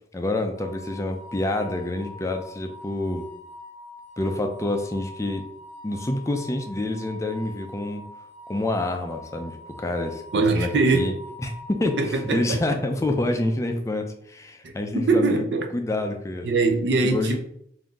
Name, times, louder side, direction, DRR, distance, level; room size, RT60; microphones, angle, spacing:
voice 1, 0.1-3.2 4.2-5.4 5.8-8.0 8.5-11.1 11.4-15.4 15.7-16.5 17.0-17.4, left 2 dB, 15° left, 0.4 m, -27 dB
sound 1, 0.6-12.8, left 1 dB, 30° right, 0.7 m, -44 dB
voice 2, 10.3-11.1 12.0-12.6 14.6-15.7 16.4-17.4, right 3 dB, 80° right, 0.6 m, -22 dB
3.6 x 2.6 x 3.7 m
head